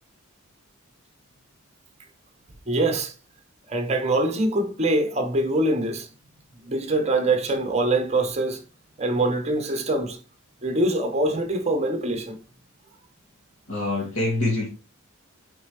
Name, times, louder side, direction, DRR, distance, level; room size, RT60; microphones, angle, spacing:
voice 1, 2.7-3.1 3.7-6.1 6.6-8.6 9.0-10.2 10.6-12.4, right 2 dB, 30° right, 1.3 m, -24 dB
voice 2, 13.7-14.7, left 2 dB, 85° left, 2.3 m, -25 dB
8.3 x 4.5 x 3.3 m
head